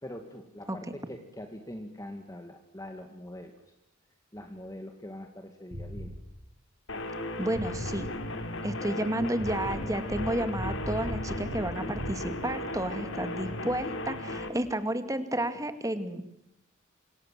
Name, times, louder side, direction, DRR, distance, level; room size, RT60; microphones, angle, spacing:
voice 1, 0.0-3.5 4.3-6.1, left 1 dB, 15° left, 4 dB, 2.3 m, -43 dB
sound 1, 5.7-6.2 7.6-8.1 9.4-12.1, equal, 65° right, 6.0 m, -37 dB
sound 2, 6.9-14.5, left 1 dB, 65° left, 3.7 m, -36 dB
voice 2, 7.4-8.1 8.6-16.2, right 1 dB, 15° right, 9 dB, 2.4 m, -31 dB
28.0 x 27.5 x 7.7 m, 0.81 s
head